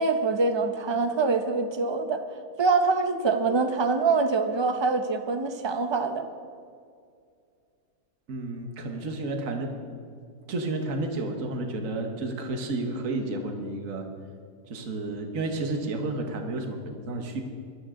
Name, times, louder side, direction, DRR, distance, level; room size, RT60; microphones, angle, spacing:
voice 1, 0.0-2.2 2.6-6.2, right 4 dB, 30° right, 8 dB, 0.5 m, -24 dB
voice 2, 8.3-9.7 10.5-14.1 14.7-17.4, right 2 dB, 55° right, 4 dB, 1.6 m, -31 dB
21.0 x 13.0 x 3.8 m, 2.3 s
omnidirectional pair, 1.7 m